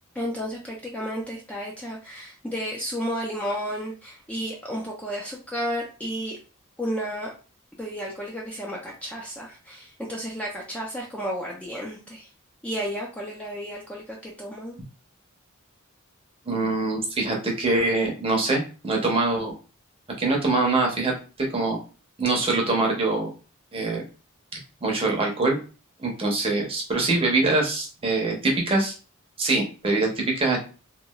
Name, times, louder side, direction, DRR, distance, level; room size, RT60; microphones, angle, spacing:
voice 1, 0.1-6.4 6.8-7.3 7.8-12.3 12.6-14.8, equal, 5° left, -3 dB, 0.4 m, -32 dB
voice 2, 16.5-19.5 20.2-21.8 22.2-23.3 23.7-24.0 24.8-25.6 26.0-28.9 29.4-30.6, right 2 dB, 25° right, 0 dB, 0.7 m, -24 dB
3.0 x 2.3 x 2.3 m, 0.34 s
head